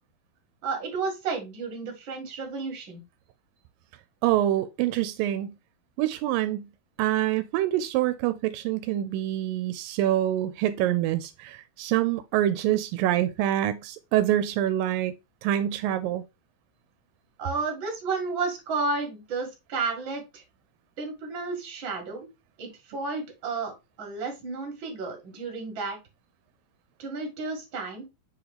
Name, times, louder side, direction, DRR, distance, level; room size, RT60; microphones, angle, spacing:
voice 1, 0.6-3.0 17.4-20.4 21.0-22.3 22.6-26.0 27.0-28.1, right 4 dB, 40° right, 2.4 m, -32 dB
voice 2, 4.2-5.5 6.0-6.7 7.0-15.1 15.4-16.2, right 13 dB, 85° right, 2.2 m, -26 dB
6.3 x 4.7 x 3.2 m
omnidirectional pair, 4.0 m